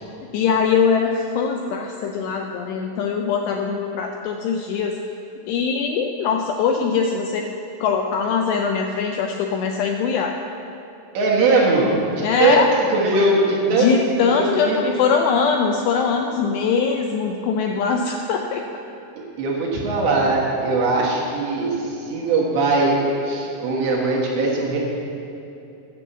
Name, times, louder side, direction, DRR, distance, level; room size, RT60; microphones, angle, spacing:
voice 1, 0.3-5.0 5.5-7.4 7.8-10.3 12.2-12.7 13.7-18.6, left 6 dB, 85° left, 2 dB, 2.5 m, -22 dB
voice 2, 11.2-11.9 12.2-12.6 12.9-13.9 14.2-14.8 19.4-23.0 23.2-24.8, right 3 dB, 70° right, -3 dB, 3.7 m, -20 dB
9.9 x 7.3 x 7.3 m, 2.7 s
omnidirectional pair, 5.5 m